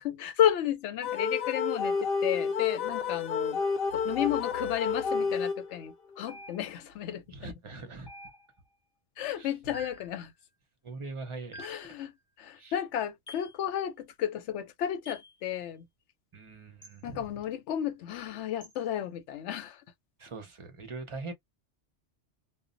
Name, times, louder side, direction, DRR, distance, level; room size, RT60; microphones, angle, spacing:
voice 1, 0.0-3.6 3.9-7.5 9.2-10.3 11.6-12.1 12.4-15.9 17.0-19.8, left 10 dB, 90° left, 0.9 m, -32 dB
sound 1, 1.0-5.9, left 5 dB, 60° left, 0.7 m, -30 dB
sound 2, 6.3-7.0 8.1-8.7 9.7-10.2 11.5-12.0 13.3-13.5 15.1-15.3 16.8-17.0 18.6-18.8, equal, 30° left, 0.5 m, -48 dB
voice 2, 7.3-8.1 9.3-9.5 10.8-11.8 12.5-12.7 16.3-17.3 20.2-21.3, right 3 dB, 35° right, 0.5 m, -42 dB
2.1 x 2.0 x 3.7 m
omnidirectional pair, 1.1 m